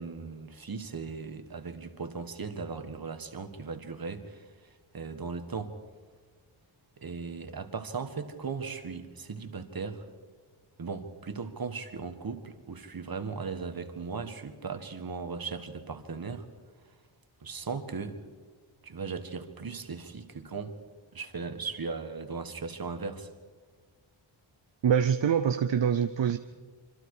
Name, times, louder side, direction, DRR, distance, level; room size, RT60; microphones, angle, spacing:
voice 1, 0.0-4.5 4.9-5.7 7.0-10.1 10.8-16.5 17.4-18.2 18.8-20.8 21.1-23.3, right 5 dB, 45° right, 8 dB, 1.7 m, -37 dB
voice 2, 24.8-26.4, right 8 dB, 65° right, 9 dB, 0.8 m, -25 dB
26.0 x 25.0 x 4.9 m, 1.4 s
wide cardioid pair, 125°, 49 cm